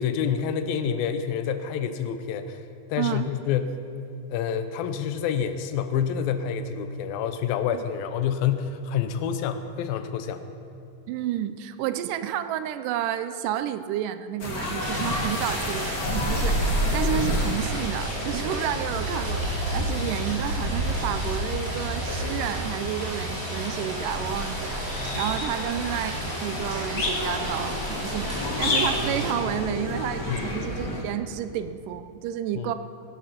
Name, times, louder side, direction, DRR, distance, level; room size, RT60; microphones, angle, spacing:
voice 1, 0.0-2.6 2.9-3.7 4.3-10.4 30.3-30.5 32.6-32.8, left 8 dB, 90° left, 9 dB, 2.6 m, -28 dB
voice 2, 3.0-3.3 7.7-7.8 11.1-26.2 26.4-32.7, right 11 dB, 80° right, 11 dB, 2.0 m, -31 dB
sound 1, 14.4-31.0, left 1 dB, 35° left, 1.7 m, -29 dB
Rain, 14.8-29.3, right 1 dB, 25° right, 3.1 m, -35 dB
18.0 x 11.5 x 5.8 m, 2.5 s
omnidirectional pair, 4.1 m